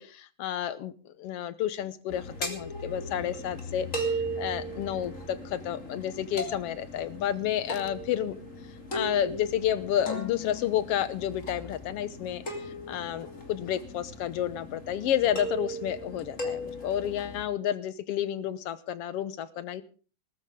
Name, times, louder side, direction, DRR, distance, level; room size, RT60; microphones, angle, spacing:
voice 1, 0.0-8.4 8.9-19.8, left 10 dB, 70° left, 15 dB, 1.6 m, -31 dB
sound 1, 2.1-17.4, equal, 25° left, 3.0 m, -37 dB
19.5 x 14.5 x 3.7 m, 0.37 s
omnidirectional pair, 3.4 m